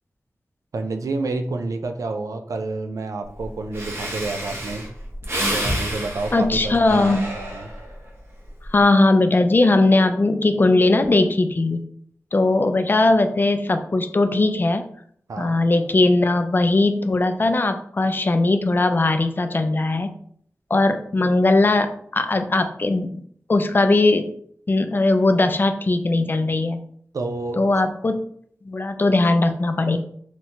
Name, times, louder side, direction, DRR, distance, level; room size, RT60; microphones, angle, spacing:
voice 1, 0.7-4.8 5.5-7.7 15.3-15.6 27.1-27.6, right 3 dB, 75° right, 6 dB, 0.3 m, -29 dB
Breathing, 3.4-3.5 3.7-8.0 8.5-8.8, equal, 45° right, 0.8 m, -29 dB
voice 2, 6.3-7.2 8.7-11.8 12.3-14.9 15.4-20.1 20.7-23.2 23.5-24.3 24.7-26.8 27.6-28.2 28.7-30.0, left 2 dB, 35° left, 8 dB, 0.3 m, -19 dB
2.9 x 2.1 x 2.7 m, 0.64 s
cardioid pair, 50°, 6 cm